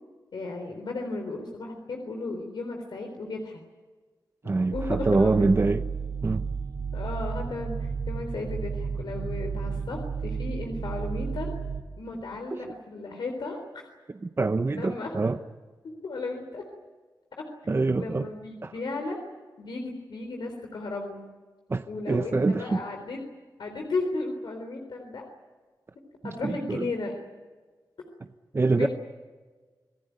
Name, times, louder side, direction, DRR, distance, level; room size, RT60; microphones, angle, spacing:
voice 1, 0.3-3.6 4.7-5.5 6.9-11.5 11.9-13.8 14.7-15.1 16.0-16.6 18.0-19.2 19.6-21.2 21.9-23.2 23.6-25.3 26.2-27.1 28.7-28.9, left 3 dB, 90° left, 2 dB, 3.9 m, -34 dB
voice 2, 4.4-5.8 6.2-6.4 12.5-12.7 14.1-15.4 17.7-18.3 18.6-18.7 21.7-22.8 26.2-26.9 28.5-28.9, right 3 dB, 35° right, 9 dB, 0.8 m, -25 dB
sound 1, 4.7-11.8, right 5 dB, 65° right, 2.3 m, -32 dB
27.5 x 18.5 x 9.4 m, 1.4 s
wide cardioid pair, 115°, 8 cm